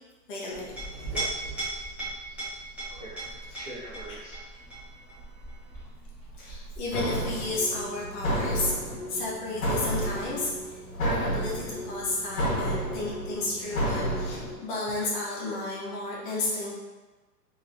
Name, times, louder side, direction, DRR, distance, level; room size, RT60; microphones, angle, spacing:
voice 1, 0.3-0.7 3.5-3.6 6.4-16.7, left 2 dB, 30° left, -5 dB, 0.8 m, -32 dB
Chink clink, 0.5-7.6, right 2 dB, 5° right, 0.8 m, -38 dB
voice 2, 3.0-5.8, right 1 dB, 30° right, -11 dB, 0.3 m, -46 dB
sound 1, 6.9-14.5, equal, 55° left, 1.2 m, -31 dB
3.4 x 3.1 x 2.6 m, 1.2 s
hypercardioid pair, 140°, 49 cm